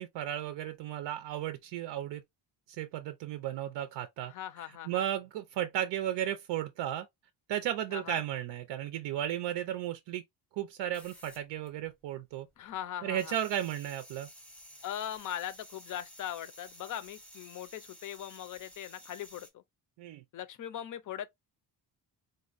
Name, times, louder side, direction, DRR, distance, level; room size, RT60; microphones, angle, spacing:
voice 1, 0.0-2.2 2.7-4.3 4.9-7.1 7.5-10.2 10.6-12.5 13.0-14.3 20.0-20.2, right 11 dB, 85° right, 0.6 m, -34 dB
voice 2, 4.2-5.1 7.9-8.2 12.6-13.4 14.8-19.6 20.3-21.3, left 11 dB, 45° left, 0.4 m, -40 dB
sound 1, 10.9-12.2 12.4-19.5, equal, 5° left, 0.6 m, -53 dB
3.9 x 2.1 x 2.4 m
cardioid pair, 150°, 43 cm